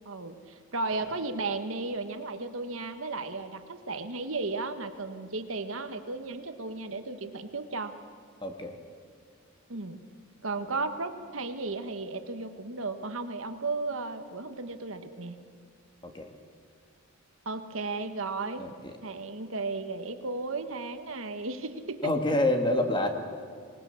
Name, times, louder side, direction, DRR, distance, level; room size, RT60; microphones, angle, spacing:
voice 1, 0.0-7.9 9.7-10.0 10.4-15.4 17.4-18.6 19.0-22.1, right 3 dB, 70° right, 8 dB, 1.4 m, -34 dB
voice 2, 8.4-8.8 16.0-16.3 18.6-18.7 22.0-23.1, left 1 dB, 20° left, 5 dB, 2.0 m, -27 dB
26.5 x 19.5 x 7.1 m, 2.2 s
head